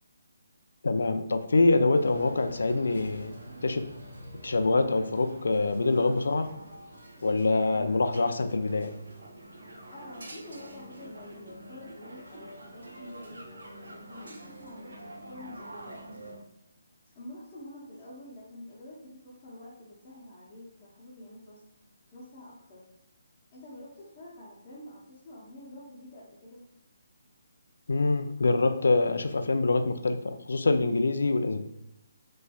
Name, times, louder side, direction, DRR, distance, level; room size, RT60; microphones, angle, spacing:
voice 1, 0.8-3.3 3.6-3.8 4.4-6.6 7.2-8.9 27.9-31.7, left 3 dB, 75° left, 8 dB, 0.3 m, -25 dB
sound 1, 1.9-16.4, right 1 dB, 75° right, 0.6 m, -47 dB
voice 2, 9.9-13.4 13.9-16.5 17.1-21.6 22.1-22.9 23.5-26.7, left 1 dB, 25° left, -10 dB, 0.9 m, -47 dB
3.1 x 2.6 x 2.3 m, 0.86 s
figure-of-eight pair, 150°, 0 cm